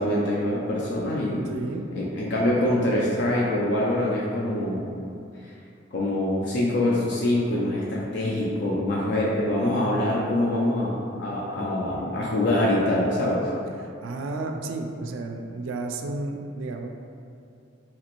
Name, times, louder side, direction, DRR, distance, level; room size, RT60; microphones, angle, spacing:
voice 1, 0.0-1.5 2.0-4.9 5.9-13.5, left 1 dB, 60° left, -5 dB, 0.4 m, -24 dB
voice 2, 1.5-1.9 13.8-16.9, right 2 dB, 85° right, 4 dB, 0.3 m, -32 dB
2.9 x 2.5 x 2.9 m, 2.5 s
head